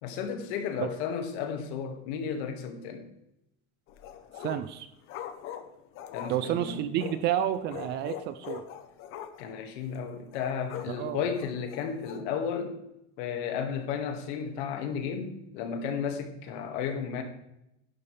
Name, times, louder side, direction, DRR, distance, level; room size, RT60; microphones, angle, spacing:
voice 1, 0.0-3.1 6.1-6.8 9.4-12.8 13.2-17.2, left 7 dB, 65° left, 6 dB, 1.9 m, -33 dB
sound 1, 3.9-4.7 5.1-7.3 7.7-9.6 9.8-9.9 10.3-10.9 11.3-12.2, left 10 dB, 35° left, 0.9 m, -42 dB
voice 2, 4.4-4.9 6.3-8.6 10.9-11.2, right 11 dB, 30° right, 12 dB, 0.4 m, -30 dB
11.5 x 11.0 x 3.3 m, 0.82 s
cardioid pair, 175°, 36 cm